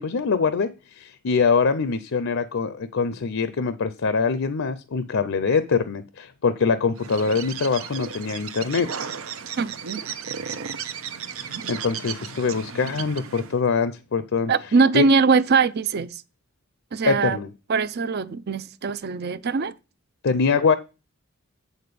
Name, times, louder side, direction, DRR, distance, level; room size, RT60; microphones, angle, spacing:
voice 1, 0.0-8.9 11.4-14.5 14.9-15.1 17.0-17.5 20.2-20.8, left 5 dB, 65° left, 0.5 m, -23 dB
Bird, 7.0-13.6, right 7 dB, 85° right, 0.7 m, -34 dB
voice 2, 14.5-16.1 16.9-17.4 17.7-19.7, right 4 dB, 50° right, 0.5 m, -21 dB
8.7 x 4.1 x 6.8 m
head